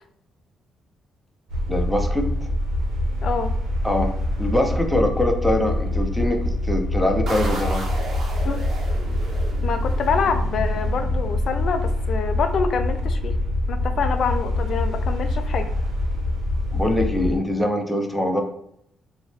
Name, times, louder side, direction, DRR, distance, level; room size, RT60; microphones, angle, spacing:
sound 1, 1.5-17.4, left 1 dB, 90° right, 0.7 m, -25 dB
voice 1, 1.7-2.3 3.8-4.1 4.4-7.8 16.7-18.4, left 1 dB, ahead, 2 dB, 0.6 m, -23 dB
voice 2, 3.1-3.5 8.4-8.7 9.6-13.3 13.7-15.7, left 5 dB, 60° left, 7 dB, 0.4 m, -26 dB
sound 2, 7.3-11.8, right 2 dB, 60° right, 0.9 m, -35 dB
3.7 x 2.1 x 3.1 m, 0.73 s
cardioid pair, 90°, 0 cm